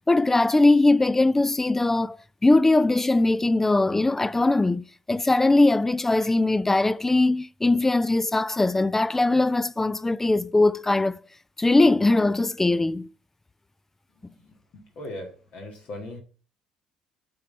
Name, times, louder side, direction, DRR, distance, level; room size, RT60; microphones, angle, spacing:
voice 1, 0.1-2.2 2.4-11.2 11.6-13.1, left 2 dB, 15° left, 0.3 m, -21 dB
voice 2, 14.7-16.2, left 1 dB, 50° left, 1.6 m, -38 dB
8.5 x 4.0 x 5.3 m
figure-of-eight pair, 55°, 2 cm